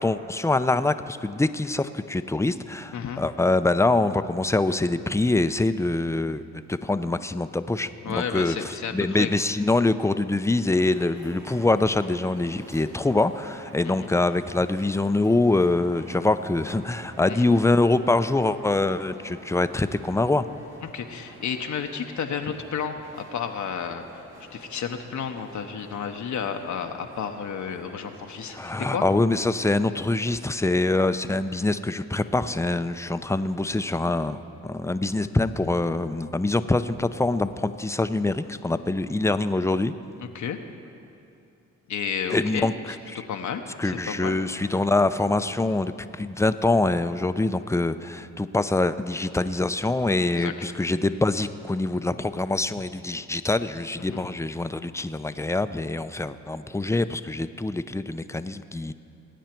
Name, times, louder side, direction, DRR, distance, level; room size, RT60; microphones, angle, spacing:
voice 1, 0.0-6.4 6.7-20.4 28.5-39.9 42.3-42.7 43.1-43.2 43.8-58.9, left 2 dB, 10° left, 11 dB, 0.6 m, -24 dB
voice 2, 2.9-3.2 8.0-9.3 13.8-14.1 17.3-17.4 20.8-24.2 24.5-29.0 40.2-40.6 41.9-44.4 50.2-50.5 54.0-54.2, left 7 dB, 65° left, 5 dB, 0.9 m, -32 dB
sound 1, 10.8-29.1, right 2 dB, 70° right, 2.5 m, -48 dB
20.5 x 9.2 x 4.5 m, 2.6 s
supercardioid pair, 50°, 31 cm